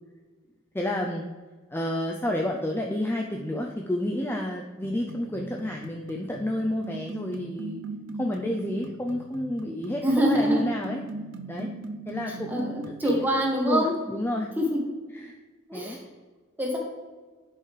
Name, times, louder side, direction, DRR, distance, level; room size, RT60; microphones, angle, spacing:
voice 1, 0.7-1.3 1.7-7.8 8.2-11.0 11.5-11.7 12.1-13.3 13.6-14.5 15.1-15.4 15.7-16.0, left 1 dB, 10° left, 1 dB, 0.5 m, -30 dB
sound 1, 4.8-13.3, right 2 dB, 65° right, 0.6 m, -40 dB
voice 2, 10.0-10.6 12.3-13.9 14.6-14.8 15.7-16.0 16.6-16.8, equal, 10° right, -1 dB, 1.6 m, -25 dB
10.5 x 5.6 x 3.3 m, 1.4 s
head